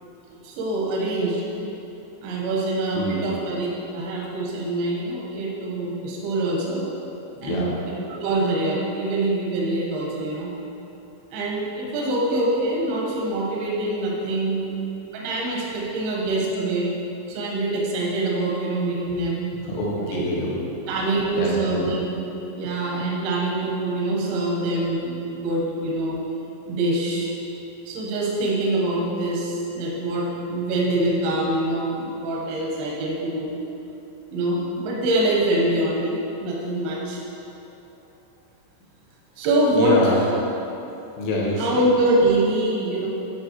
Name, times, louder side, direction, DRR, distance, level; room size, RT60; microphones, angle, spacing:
voice 1, 0.4-1.4 2.2-3.7 3.9-6.8 7.4-7.7 8.1-10.5 11.3-14.6 15.1-16.9 17.3-19.5 20.1-20.2 20.9-22.2 22.5-26.2 26.7-27.3 27.9-33.5 34.3-37.2 39.4-40.0 41.6-43.1, right 2 dB, 80° right, -3 dB, 2.2 m, -24 dB
voice 2, 2.9-3.3 7.4-7.7 14.5-14.8 19.6-20.5 20.9-21.1 21.4-21.9 39.4-39.5 39.7-40.2 40.5-40.6 41.2-41.8, left 1 dB, 75° left, -4 dB, 2.5 m, -26 dB
9.6 x 3.9 x 3.0 m, 2.9 s
omnidirectional pair, 5.8 m